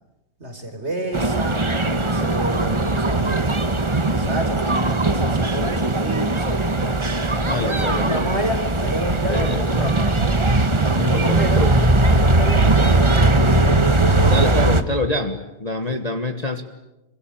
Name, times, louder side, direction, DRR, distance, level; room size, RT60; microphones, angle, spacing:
voice 1, 0.4-1.6 2.0-6.7 7.5-10.2 11.0-13.8 15.8-16.0, right 1 dB, 40° right, 5 dB, 4.7 m, -29 dB
sound 1, 1.1-14.8, right 2 dB, 20° right, 1.2 m, -19 dB
voice 2, 7.4-8.2 9.3-9.9 10.9-11.8 14.3-16.6, left 2 dB, 25° left, 7 dB, 1.5 m, -26 dB
26.5 x 25.0 x 8.9 m, 0.95 s
omnidirectional pair, 1.8 m